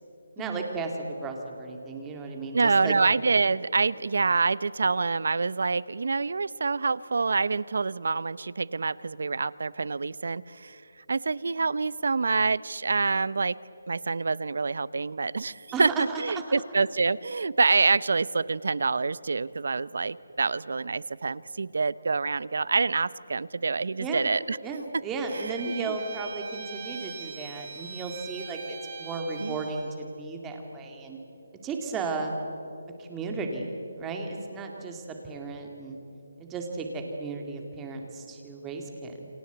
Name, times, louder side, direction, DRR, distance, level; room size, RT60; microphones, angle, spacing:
voice 1, 0.4-2.9 15.7-16.4 24.0-24.3 24.6-31.2 31.6-32.4 33.0-36.0 36.4-39.3, right 3 dB, 10° right, 3 dB, 2.3 m, -34 dB
voice 2, 2.5-10.8 11.1-13.6 13.9-24.6 24.9-25.0 25.3-25.6 25.9-26.0 29.4-29.6 34.7-34.8, right 4 dB, 65° right, 19 dB, 0.7 m, -26 dB
Bowed string instrument, 25.3-29.9, right 6 dB, 35° right, 2.8 m, -41 dB
29.0 x 25.0 x 8.2 m, 2.9 s
hypercardioid pair, 170°, 0 cm